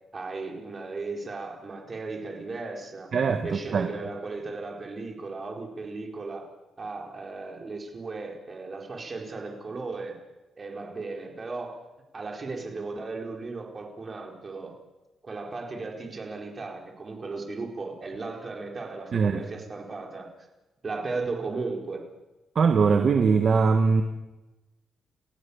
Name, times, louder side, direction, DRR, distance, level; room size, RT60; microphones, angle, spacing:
voice 1, 0.1-3.1 3.4-6.5 6.8-10.1 10.6-11.8 12.1-14.7 15.2-20.3 20.8-22.0, right 3 dB, 30° right, 1 dB, 4.5 m, -36 dB
voice 2, 3.1-3.9 19.1-19.4 22.5-24.0, right 5 dB, 45° right, 6 dB, 1.5 m, -21 dB
29.5 x 15.5 x 7.2 m, 1.1 s
cardioid pair, 125°, 0 cm